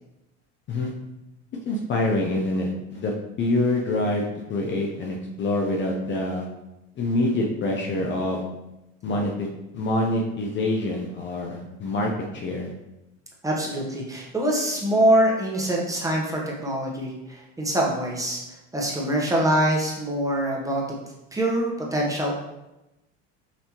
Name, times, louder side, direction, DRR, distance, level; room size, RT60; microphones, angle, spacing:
voice 1, 1.7-6.5 7.0-8.4 9.0-9.5 9.7-12.7, left 2 dB, 35° left, 0 dB, 0.6 m, -26 dB
voice 2, 13.4-18.4 18.7-21.0 21.3-22.3, right 1 dB, 10° right, -3 dB, 0.9 m, -24 dB
5.8 x 2.8 x 2.9 m, 0.95 s
supercardioid pair, 120°, 34 cm